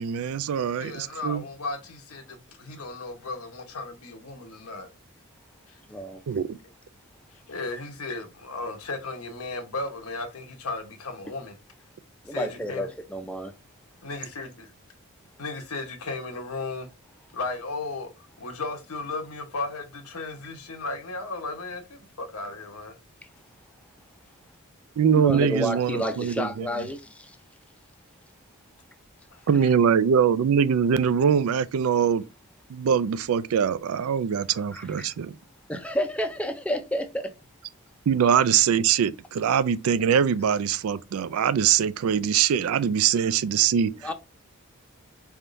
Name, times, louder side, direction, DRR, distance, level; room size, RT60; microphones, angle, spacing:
voice 1, 0.0-1.4 6.3-6.6 25.0-26.7 29.5-32.2 32.7-35.4 38.1-43.9, right 7 dB, 75° right, 0.4 m, -23 dB
voice 2, 0.8-4.9 7.5-11.5 12.3-12.9 14.0-14.7 15.4-16.9 17.3-18.1 18.4-22.9, left 3 dB, 90° left, 1.0 m, -35 dB
voice 3, 5.9-6.2 12.2-13.5 25.1-27.4 34.7-35.1 35.7-37.3 44.0-44.1, equal, 5° left, 0.5 m, -30 dB
4.3 x 3.5 x 2.5 m
head